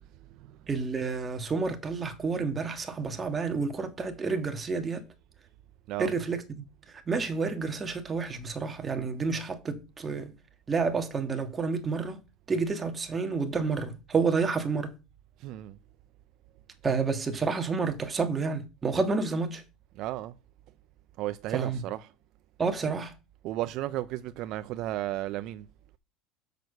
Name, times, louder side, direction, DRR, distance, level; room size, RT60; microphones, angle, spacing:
voice 1, 0.7-5.0 6.0-6.6 7.1-10.3 10.7-12.2 12.5-14.9 16.8-19.6 21.5-21.8 22.6-23.1, right 4 dB, 20° right, 1.7 m, -29 dB
voice 2, 15.4-15.8 19.9-20.4 21.2-22.1 23.4-25.7, right 15 dB, 55° right, 0.5 m, -34 dB
6.7 x 6.1 x 6.7 m
supercardioid pair, 125°, 0 cm